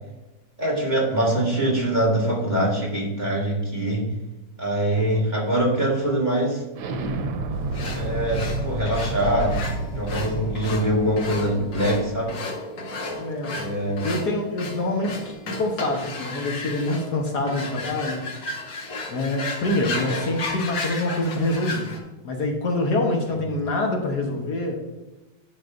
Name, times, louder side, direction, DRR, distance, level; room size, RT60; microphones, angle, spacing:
voice 1, 0.6-4.1 4.6-6.6 7.9-9.6 9.9-12.4 13.5-14.1, right 1 dB, 25° right, -3 dB, 1.8 m, -23 dB
Explosion, 6.7-12.3, right 2 dB, 90° right, 1.6 m, -30 dB
sound 1, 7.7-22.0, left 2 dB, 80° left, 2.0 m, -34 dB
voice 2, 13.2-13.6 14.0-18.7 19.1-22.0 22.2-24.8, left 2 dB, 65° left, 1 dB, 1.6 m, -26 dB
10.5 x 6.2 x 2.6 m, 1.1 s
omnidirectional pair, 2.0 m